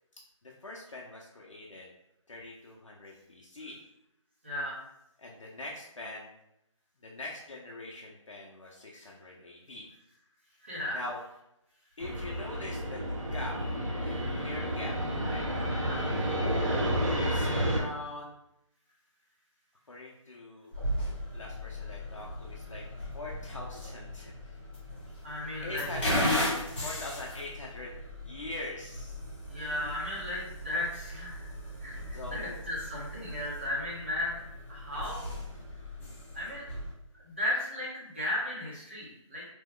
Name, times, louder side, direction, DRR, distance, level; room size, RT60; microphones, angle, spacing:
voice 1, 0.6-1.9 2.3-3.8 5.2-6.3 7.0-9.9 10.9-11.2 12.0-13.0 13.3-13.6 14.0-15.4 17.2-18.3 19.9-20.7 21.1-22.8 23.1-24.6 25.6-26.3 26.8-27.9 28.2-29.2 32.1-32.6, left 2 dB, 65° left, -3 dB, 0.6 m, -42 dB
voice 2, 4.4-4.8 10.6-11.0 15.7-16.1 25.2-25.9 29.5-31.5 31.8-35.3 36.3-36.7 37.2-39.4, left 1 dB, 20° right, -6 dB, 0.8 m, -35 dB
Fixed-wing aircraft airplane, 12.0-17.8, equal, 70° right, 1.1 m, -30 dB
sound 1, 20.7-36.9, left 1 dB, 20° left, 0.9 m, -37 dB
2.9 x 2.2 x 3.6 m, 0.84 s
figure-of-eight pair, 180°, 17 cm